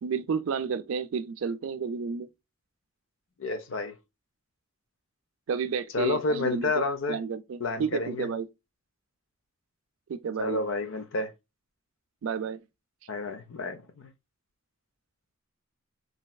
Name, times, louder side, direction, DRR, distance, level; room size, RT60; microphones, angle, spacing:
voice 1, 0.0-2.3 5.5-8.5 10.1-10.6 12.2-12.6, right 6 dB, 75° right, 0.4 m, -31 dB
voice 2, 3.4-3.9 5.9-7.2 7.6-8.3 10.4-11.3 13.1-14.1, left 3 dB, 70° left, 0.6 m, -30 dB
3.2 x 2.7 x 2.2 m
head